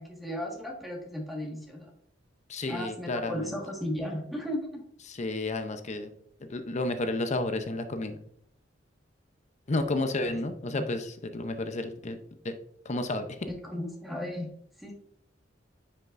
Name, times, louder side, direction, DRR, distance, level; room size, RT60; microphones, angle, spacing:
voice 1, 0.0-1.9 2.7-4.8 10.6-10.8 13.5-14.5 14.8-14.9, left 1 dB, ahead, 0 dB, 1.6 m, -35 dB
voice 2, 2.5-3.5 5.1-6.1 6.4-8.2 9.7-12.2 12.4-12.6 12.8-13.4, left 2 dB, 40° left, 8 dB, 0.6 m, -31 dB
9.6 x 5.4 x 2.5 m, 0.70 s
head